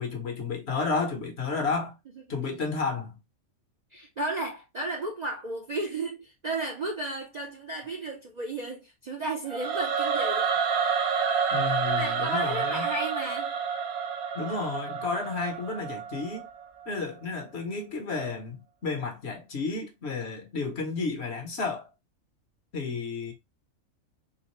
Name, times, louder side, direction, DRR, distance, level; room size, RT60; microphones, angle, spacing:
voice 1, 0.0-1.9 2.3-3.2 11.5-12.9 14.3-16.5 16.9-21.9 22.7-23.3, left 4 dB, 55° left, 1.0 m, -32 dB
voice 2, 3.9-10.5 11.9-13.5, right 2 dB, 45° right, 0.5 m, -34 dB
Singing / Musical instrument, 9.5-16.6, right 6 dB, 80° right, 1.1 m, -29 dB
3.8 x 2.5 x 2.9 m
omnidirectional pair, 1.4 m